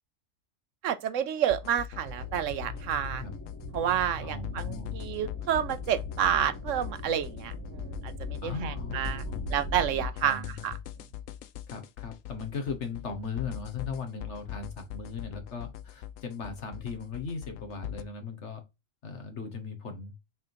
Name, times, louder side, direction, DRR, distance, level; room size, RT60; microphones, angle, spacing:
voice 1, 0.8-3.2 3.7-9.2 9.5-10.7, right 9 dB, 75° right, 1.0 m, -30 dB
sound 1, 1.5-18.0, left 12 dB, 85° left, 1.0 m, -41 dB
sound 2, 2.0-10.1, left 2 dB, 10° left, 2.0 m, -39 dB
voice 2, 4.2-5.0 8.4-9.5 10.2-10.7 11.7-18.6 19.0-20.1, left 5 dB, 60° left, 1.7 m, -38 dB
5.9 x 3.7 x 4.4 m
omnidirectional pair, 1.3 m